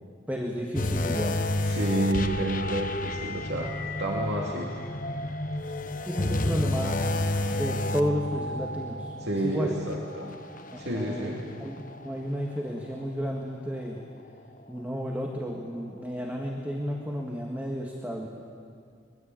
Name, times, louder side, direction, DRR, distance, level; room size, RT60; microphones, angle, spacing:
voice 1, 0.3-1.4 6.1-7.1 7.5-9.1 9.4-9.8 10.9-11.8 12.0-14.0 14.7-18.3, equal, 10° right, 1 dB, 1.7 m, -32 dB
sound 1, 0.8-12.2 12.6-12.8 13.4-13.5, left 1 dB, 45° left, 1.0 m, -31 dB
voice 2, 1.6-4.8 5.6-5.7 9.2-10.3 10.8-11.5, right 1 dB, 65° right, -2 dB, 2.3 m, -30 dB
24.5 x 22.0 x 9.1 m, 2.2 s
head